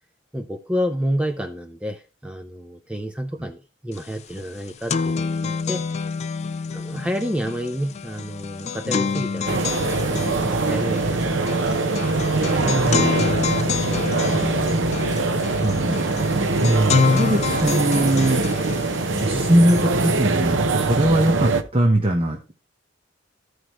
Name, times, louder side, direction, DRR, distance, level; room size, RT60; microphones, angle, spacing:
voice 1, 0.3-6.0 6.7-9.5 9.9-12.1 12.4-14.8, equal, 5° right, 5 dB, 0.6 m, -30 dB
sound 1, 4.0-4.1 4.4-19.9, left 5 dB, 35° left, 0.4 m, -27 dB
sound 2, 9.5-21.6, right 3 dB, 80° right, 0.9 m, -23 dB
voice 2, 12.6-13.1 15.6-16.2 16.6-22.5, right 1 dB, 30° right, 2 dB, 1.1 m, -21 dB
14.5 x 4.9 x 3.0 m, 0.31 s
head